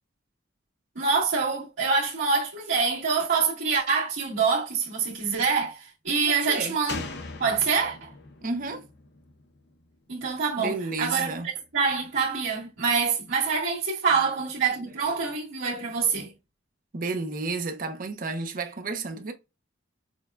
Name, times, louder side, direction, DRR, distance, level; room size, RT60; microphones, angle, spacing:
voice 1, 0.9-7.0 7.4-8.1 10.1-16.3, right 5 dB, 85° right, 1.7 m, -26 dB
Slam, 6.9-10.4 10.7-10.8, left 3 dB, 60° left, 0.7 m, -40 dB
voice 2, 8.4-8.9 10.6-11.5 16.9-19.3, right 3 dB, 45° right, 0.6 m, -31 dB
6.2 x 2.3 x 2.3 m
head